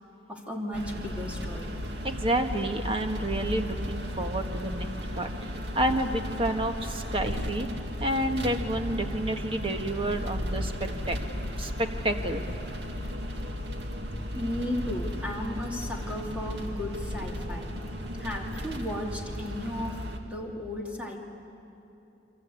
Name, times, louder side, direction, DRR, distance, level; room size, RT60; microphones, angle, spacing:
voice 1, 0.3-1.8 14.3-17.8 18.2-20.0 20.3-21.2, left 1 dB, 5° right, 0 dB, 2.6 m, -34 dB
sound 1, 0.7-20.2, equal, 70° right, 2.1 m, -35 dB
voice 2, 2.0-4.9 5.2-7.7 8.0-11.2 11.6-12.4, right 1 dB, 30° right, 6 dB, 1.5 m, -29 dB
28.5 x 24.0 x 8.5 m, 2.9 s
head